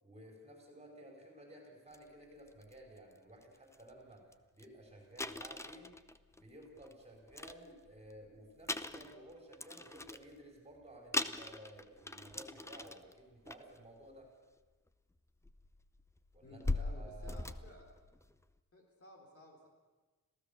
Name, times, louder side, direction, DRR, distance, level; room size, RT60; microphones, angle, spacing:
voice 1, 0.0-4.3 4.5-6.0 6.3-14.3 16.3-17.5, right 1 dB, 20° right, 0 dB, 5.2 m, -55 dB
sound 1, 1.9-2.0 2.5-2.7 3.4-3.5 3.7-3.9 4.3-4.4 4.6-4.7 5.2-6.9 7.3-8.2 8.6-10.3 10.8-10.9 11.1-13.1 13.5-13.8 14.9-15.0 15.4-18.4, left 2 dB, 10° left, 0.6 m, -40 dB
voice 2, 16.4-17.9 18.7-19.7, left 1 dB, 40° left, 0 dB, 3.8 m, -56 dB
26.5 x 16.5 x 7.1 m, 1.3 s
wide cardioid pair, 165°, 35 cm